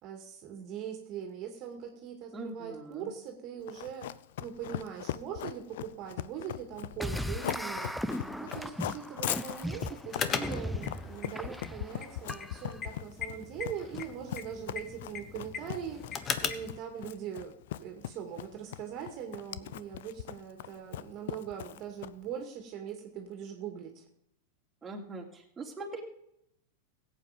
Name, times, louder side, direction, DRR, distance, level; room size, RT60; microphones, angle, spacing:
voice 1, 0.0-4.1 4.4-24.0, right 8 dB, 45° right, 4 dB, 2.4 m, -41 dB
voice 2, 2.3-3.1 24.8-26.0, right 2 dB, 15° right, -1 dB, 3.2 m, -42 dB
Run, 3.7-22.3, left 13 dB, 70° left, 0.5 m, -40 dB
sound 1, 7.0-12.8, equal, ahead, 0.8 m, -38 dB
sound 2, 10.1-16.8, left 7 dB, 30° left, 1.3 m, -39 dB
16.5 x 8.6 x 5.2 m, 0.76 s
hypercardioid pair, 105°, 0 cm